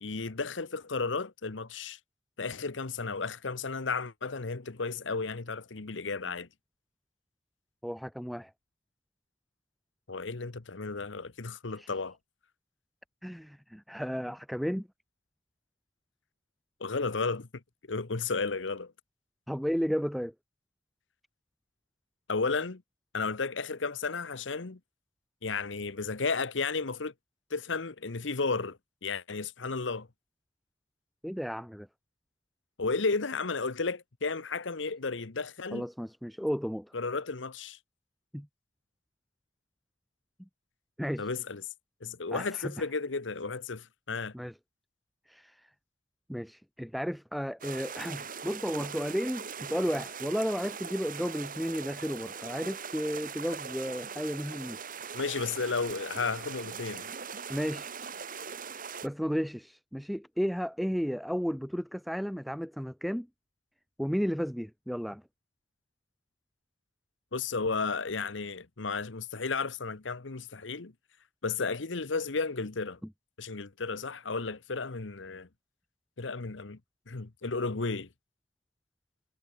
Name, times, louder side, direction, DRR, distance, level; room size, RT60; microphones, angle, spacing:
voice 1, 0.0-2.0 2.4-6.5 10.1-12.2 16.8-17.6 17.9-18.9 22.3-22.8 23.1-24.8 25.4-27.1 27.5-30.1 32.8-35.8 36.9-37.8 41.2-41.6 42.0-44.3 55.1-57.1 67.3-70.9 71.4-73.0 73.4-75.5 76.2-76.8 77.1-78.1, left 4 dB, 80° left, 1.1 m, -33 dB
voice 2, 7.8-8.5 11.8-11.9 13.2-14.9 19.5-20.3 31.2-31.9 35.7-36.9 38.3-38.5 40.4-40.5 41.0-41.3 42.3-42.9 44.3-44.5 45.3-45.7 46.3-54.9 57.5-57.9 59.0-63.3 64.0-65.2, equal, ahead, 1.0 m, -33 dB
sound 1, 47.6-59.1, right 6 dB, 50° right, 4.2 m, -41 dB
head